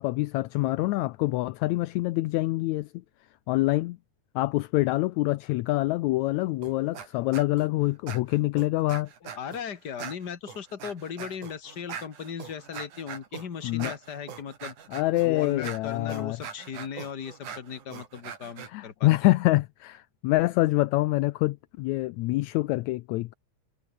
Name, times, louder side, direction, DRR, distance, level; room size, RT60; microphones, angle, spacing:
voice 1, 0.0-2.9 3.5-4.0 4.4-9.1 13.6-13.9 14.9-16.4 18.7-23.3, left 19 dB, 80° left, 1.8 m, -26 dB
sound 1, 6.6-7.1 7.3-7.7 8.1-9.6 10.0-18.7, right 7 dB, 80° right, 4.4 m, -41 dB
voice 2, 9.2-14.8 15.2-19.3, left 7 dB, 35° left, 2.3 m, -38 dB
omnidirectional pair, 3.5 m